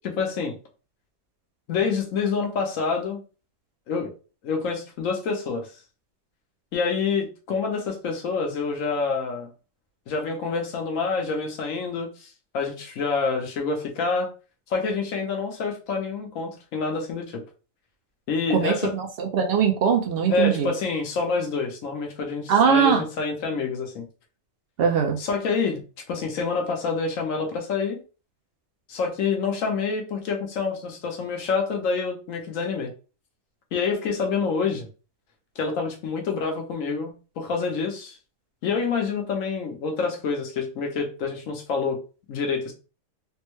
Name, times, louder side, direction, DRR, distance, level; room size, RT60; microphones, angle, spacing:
voice 1, 0.2-0.5 1.7-3.2 3.9-4.1 4.4-5.7 6.7-9.5 10.1-14.3 14.7-17.4 18.3-18.9 20.3-24.1 25.2-25.8 26.1-28.0 28.9-32.9 33.7-34.9 35.6-38.2 38.6-42.0 42.3-42.7, left 4 dB, 70° left, 2 dB, 1.0 m, -27 dB
voice 2, 18.5-20.7 22.5-23.0 24.8-25.2, right 7 dB, 60° right, 3 dB, 0.6 m, -21 dB
3.4 x 2.1 x 3.0 m, 0.35 s
omnidirectional pair, 1.5 m